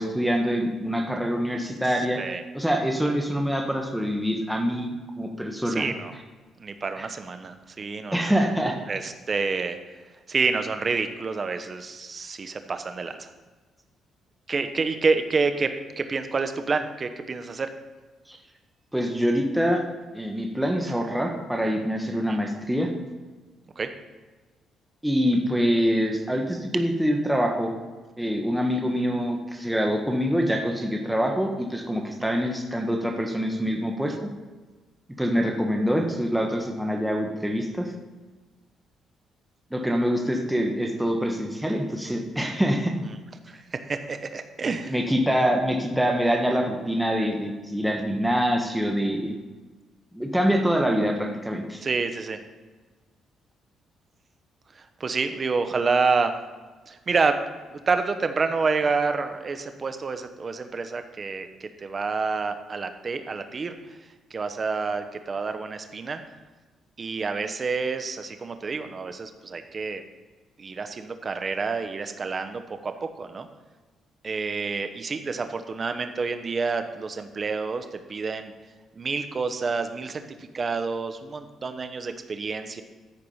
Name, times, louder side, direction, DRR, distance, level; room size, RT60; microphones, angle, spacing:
voice 1, 0.0-2.2 2.5-4.9 5.2-5.9 7.0-7.1 8.1-8.7 18.3-18.4 18.9-19.8 20.1-22.9 25.0-27.8 28.2-34.1 35.2-37.9 39.7-42.9 44.9-49.4 50.1-51.8, equal, 5° right, 1 dB, 1.3 m, -25 dB
voice 2, 5.7-6.1 6.6-8.3 8.9-9.8 10.3-13.3 14.5-17.7 22.3-22.4 23.8-23.9 32.2-32.4 43.0-43.2 43.5-44.9 51.8-52.4 54.7-56.3 56.9-57.4 57.7-63.7 64.3-66.2 67.0-70.0 70.6-73.5 74.2-78.5 79.0-82.8, right 4 dB, 40° right, 8 dB, 1.0 m, -28 dB
13.5 x 4.9 x 5.6 m, 1.3 s
cardioid pair, 90°, 0 cm